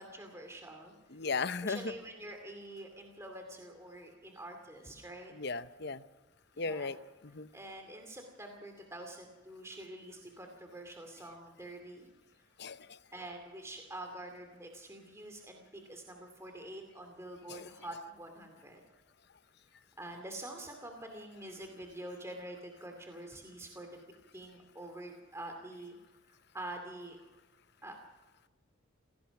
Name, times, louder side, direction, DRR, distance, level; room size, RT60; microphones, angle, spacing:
voice 1, 0.0-0.9 1.6-5.3 6.5-6.9 7.5-12.1 13.1-18.8 20.0-24.0 24.3-26.0 26.5-27.2 27.8-27.9, right 1 dB, 15° right, 4 dB, 2.4 m, -46 dB
voice 2, 1.1-2.0 5.3-6.0 6.6-7.5 12.6-13.0 17.5-17.7, left 4 dB, 50° left, 12 dB, 0.8 m, -37 dB
27.0 x 17.5 x 6.0 m, 1.2 s
head